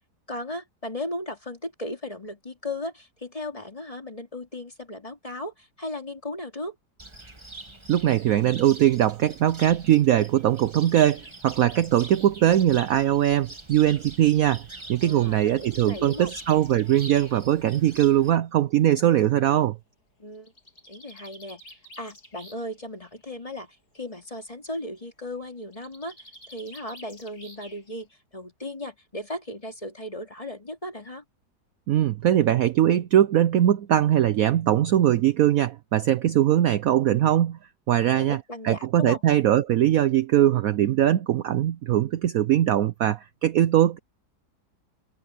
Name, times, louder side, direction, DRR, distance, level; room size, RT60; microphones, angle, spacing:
voice 1, 0.3-6.7 15.0-16.3 20.2-20.5 20.9-26.2 26.5-31.2 37.9-39.2, left 1 dB, 20° left, 3.1 m, -36 dB
Cricket, 7.0-18.3, right 2 dB, 15° right, 1.6 m, -44 dB
voice 2, 7.9-19.8 31.9-37.6 37.9-38.4 38.6-44.0, right 11 dB, 65° right, 0.9 m, -21 dB
Bird, 10.3-13.9 15.0-17.3 18.4-18.5 18.9-19.0 19.2-19.3 20.3-22.8 23.1-23.5 25.6-28.0, equal, 65° left, 7.9 m, -50 dB
omnidirectional pair, 1.9 m